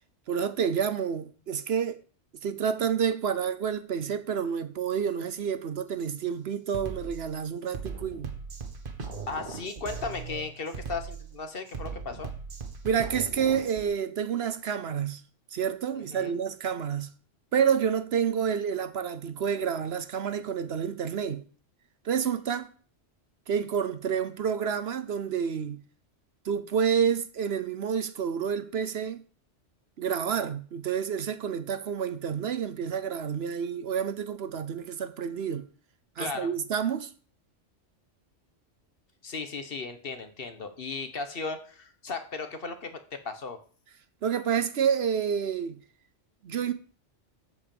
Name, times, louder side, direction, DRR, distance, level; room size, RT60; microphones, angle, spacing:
voice 1, 0.3-2.0 2.4-8.3 12.8-15.2 15.5-17.1 17.5-21.4 22.0-22.7 23.5-25.8 26.4-29.2 30.0-35.7 36.2-37.1 44.2-45.8 46.4-46.7, right 7 dB, 60° right, 0.9 m, -29 dB
Drum kit, 6.0-6.2 6.7-13.9, right 5 dB, 45° right, 1.5 m, -39 dB
voice 2, 9.3-12.3 16.1-16.3 36.2-36.5 39.2-43.6, left 4 dB, 50° left, 1.2 m, -36 dB
8.3 x 5.3 x 7.0 m
omnidirectional pair, 1.2 m